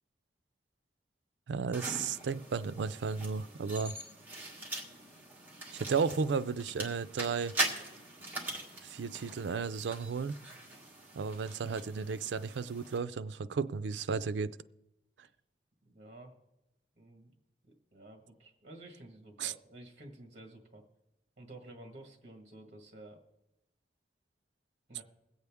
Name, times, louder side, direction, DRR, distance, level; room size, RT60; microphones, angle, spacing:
voice 1, 1.5-3.9 5.7-7.5 8.8-10.3 11.1-14.6 19.4-19.5, right 5 dB, 85° right, 0.4 m, -34 dB
sound 1, 1.7-13.0, right 1 dB, 10° right, 1.6 m, -42 dB
voice 2, 15.8-16.3 17.0-17.3 17.9-20.8 21.4-23.2 24.9-25.0, right 1 dB, 40° right, 1.5 m, -52 dB
22.0 x 8.1 x 3.5 m
head